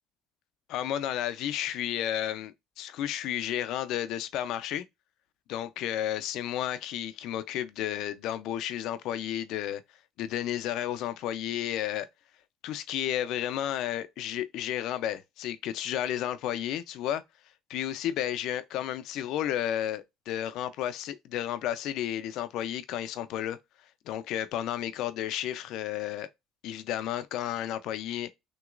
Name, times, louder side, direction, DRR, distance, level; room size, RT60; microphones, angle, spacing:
voice 1, 0.7-4.8 5.5-9.8 10.2-12.1 12.6-17.2 17.7-23.6 24.1-26.3 26.6-28.3, left 11 dB, 65° left, 0.6 m, -32 dB
6.1 x 3.0 x 2.5 m
cardioid pair, 130°, 0 cm